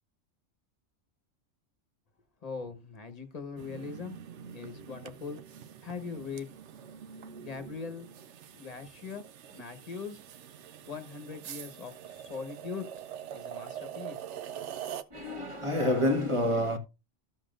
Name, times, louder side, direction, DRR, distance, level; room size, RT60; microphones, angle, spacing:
voice 1, 2.4-4.2 4.5-6.5 7.4-8.1 8.5-9.3 9.5-10.2 10.9-12.9 13.3-14.2, left 5 dB, 30° left, 1.2 m, -41 dB
sound 1, 3.6-15.0, right 9 dB, 65° right, 0.9 m, -44 dB
voice 2, 15.1-16.8, left 1 dB, 25° right, 1.2 m, -28 dB
13.5 x 7.1 x 2.5 m
omnidirectional pair, 1.3 m